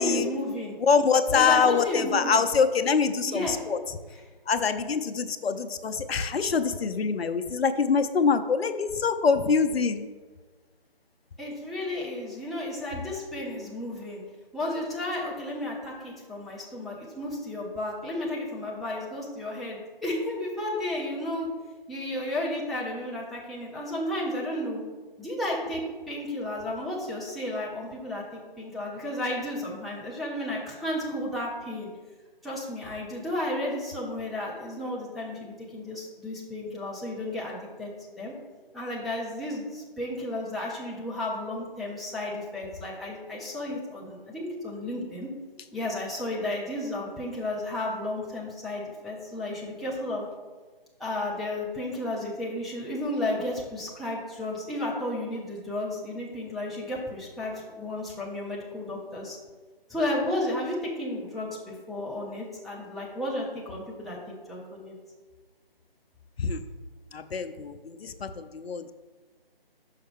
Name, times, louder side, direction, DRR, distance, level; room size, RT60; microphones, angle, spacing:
voice 1, 0.0-0.8 1.3-2.4 3.3-3.6 4.1-4.2 11.4-14.2 14.5-21.5 21.9-24.8 25.2-25.8 26.1-31.9 32.4-38.3 38.7-45.3 45.7-50.2 51.0-59.4 59.9-64.9, left 1 dB, ahead, -6 dB, 0.4 m, -33 dB
voice 2, 0.8-4.0 4.5-10.1 66.4-66.6 67.1-68.9, left 5 dB, 90° left, 10 dB, 0.6 m, -25 dB
5.6 x 5.6 x 3.6 m, 1.4 s
figure-of-eight pair, 180°, 30 cm